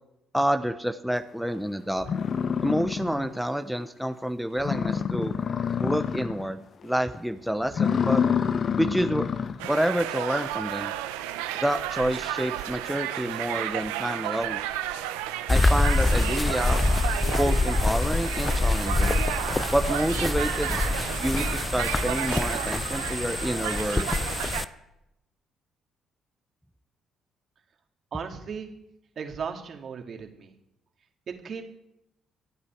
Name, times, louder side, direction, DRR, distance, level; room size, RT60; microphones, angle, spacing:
voice 1, 0.3-2.1 2.6-5.3 5.8-8.2 8.8-9.3 9.7-10.9 11.5-14.6 15.5-16.8 17.3-19.2 19.7-20.8 21.1-24.1, equal, ahead, 7 dB, 1.0 m, -28 dB
sound 1, 1.5-1.6 2.0-3.4 3.8-3.9 4.3-4.4 4.6-6.5 6.8-7.2 7.6-9.7, left 7 dB, 55° left, 0.8 m, -27 dB
sound 2, 9.6-24.6, right 12 dB, 90° right, 0.8 m, -32 dB
sound 3, 15.5-24.6, left 2 dB, 25° left, 0.7 m, -25 dB
voice 2, 28.1-28.7 29.2-30.5 31.3-31.6, right 6 dB, 55° right, 4 dB, 2.4 m, -36 dB
25.0 x 8.8 x 4.6 m, 0.86 s
hypercardioid pair, 55°, 0 cm